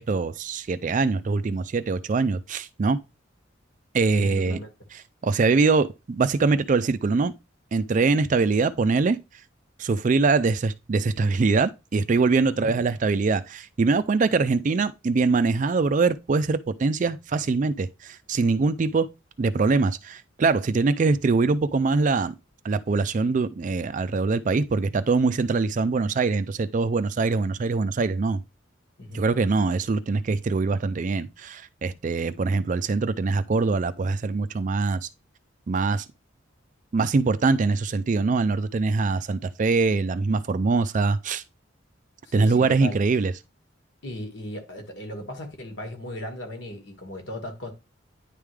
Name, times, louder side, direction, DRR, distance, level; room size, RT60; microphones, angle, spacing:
voice 1, 0.0-3.0 3.9-4.6 5.2-7.3 7.7-9.2 9.8-19.1 19.4-22.3 22.6-28.4 29.1-35.1 35.7-36.1 36.9-41.4 42.3-43.3, right 4 dB, 40° right, 0.4 m, -23 dB
voice 2, 4.1-4.7 12.4-12.8 29.0-29.3 42.2-42.9 44.0-47.7, left 1 dB, 65° left, 1.7 m, -36 dB
9.9 x 3.5 x 3.3 m
head